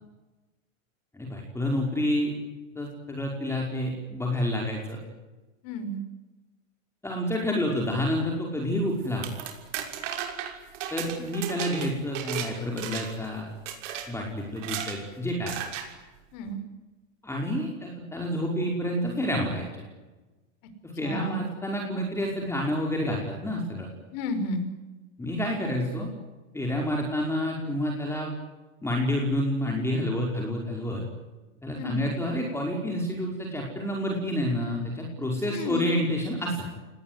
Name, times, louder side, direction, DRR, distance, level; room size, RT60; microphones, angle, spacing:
voice 1, 1.1-2.3 2.8-5.0 7.0-9.3 10.9-13.5 14.1-15.6 17.2-19.8 20.8-23.9 25.2-26.1 26.5-28.3 28.8-31.0 31.6-36.7, left 1 dB, 5° left, 0 dB, 5.3 m, -29 dB
voice 2, 5.6-6.0 16.3-16.6 21.0-21.4 24.1-24.7 31.7-32.0 35.4-35.9, left 1 dB, 50° left, 8 dB, 5.8 m, -32 dB
sound 1, 9.0-12.5 12.8-13.3 13.7-14.1 14.6-15.0 15.5-15.9, right 10 dB, 65° right, 6.3 m, -34 dB
28.5 x 20.0 x 9.8 m, 1.2 s
supercardioid pair, 135°, 39 cm